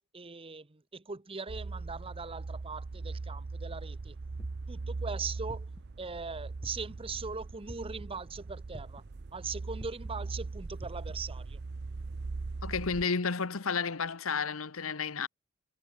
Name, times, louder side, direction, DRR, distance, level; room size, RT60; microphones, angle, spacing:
voice 1, 0.1-4.2 4.7-5.7 6.0-9.0 9.3-11.6, right 4 dB, 25° right, 1.0 m, -40 dB
sound 1, 1.5-13.1, right 3 dB, 55° right, 0.6 m, -40 dB
sound 2, 4.4-4.8 5.5-6.0 6.6-7.1 7.7-8.0 8.7-9.1 9.8-10.1 10.8-11.2, equal, ahead, 0.8 m, -46 dB
voice 2, 12.6-15.3, left 5 dB, 75° left, 1.1 m, -32 dB
head